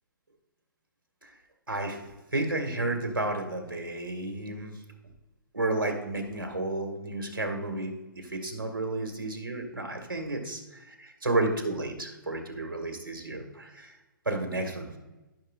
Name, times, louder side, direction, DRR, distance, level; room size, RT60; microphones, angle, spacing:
voice 1, 1.7-4.8 5.5-14.0 14.3-14.9, right 2 dB, 85° right, 4 dB, 2.1 m, -32 dB
14.5 x 6.5 x 2.4 m, 1.1 s
figure-of-eight pair, 125°, 11 cm